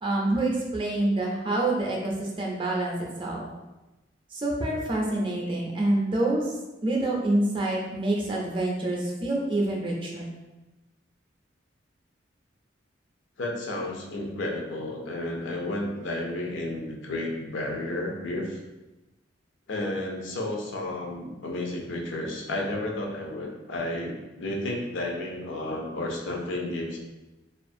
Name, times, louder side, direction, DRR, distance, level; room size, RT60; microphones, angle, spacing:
voice 1, 0.0-3.5 4.3-6.4 6.8-10.3, right 2 dB, 25° right, -1 dB, 0.4 m, -27 dB
voice 2, 13.4-18.6 19.7-27.0, left 1 dB, 85° left, 0 dB, 0.5 m, -32 dB
2.4 x 2.4 x 2.5 m, 1.1 s
head